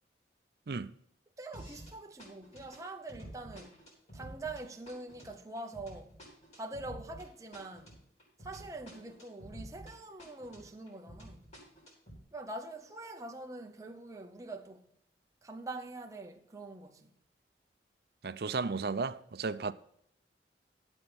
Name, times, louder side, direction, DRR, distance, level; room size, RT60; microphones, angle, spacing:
voice 1, 1.4-3.8 4.1-6.2 6.5-8.0 8.4-11.4 12.3-14.9 15.4-17.1, right 2 dB, 20° right, 0.7 m, -44 dB
sound 1, 1.5-1.9 2.2-9.9 10.2-12.2, right 1 dB, 40° left, 3.7 m, -50 dB
voice 2, 18.2-19.7, right 4 dB, 60° right, 0.5 m, -34 dB
11.5 x 7.8 x 4.3 m
head